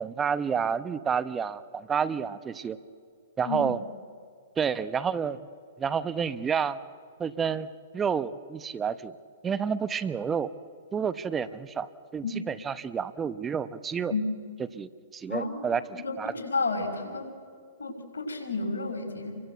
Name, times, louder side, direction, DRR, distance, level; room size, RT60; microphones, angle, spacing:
voice 1, 0.0-2.8 3.4-3.8 4.6-5.4 5.8-6.8 7.2-7.7 7.9-9.1 9.4-10.5 10.9-14.1 14.7-16.3, right 6 dB, 15° right, 14 dB, 0.9 m, -29 dB
voice 2, 15.3-17.3 17.8-19.4, left 3 dB, 90° left, 3 dB, 6.1 m, -32 dB
29.5 x 23.5 x 8.0 m, 2.1 s
hypercardioid pair, 130°, 0 cm